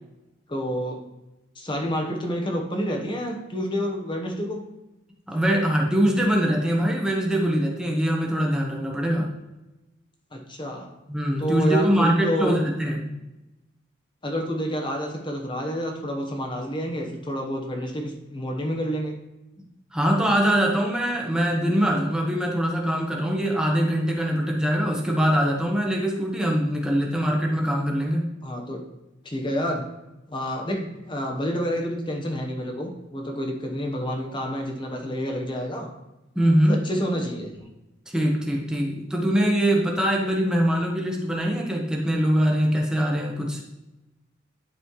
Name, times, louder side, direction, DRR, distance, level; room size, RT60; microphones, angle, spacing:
voice 1, 0.5-1.0 1.6-4.6 10.3-10.9 11.4-12.6 14.2-19.2 28.4-28.8 29.2-29.8 30.3-35.9 36.7-37.6, equal, 25° left, 2 dB, 1.0 m, -29 dB
voice 2, 5.3-9.3 11.1-13.1 19.9-28.3 36.3-36.8 38.1-43.6, equal, 5° right, -1 dB, 1.0 m, -23 dB
11.5 x 4.2 x 3.1 m, 0.99 s
head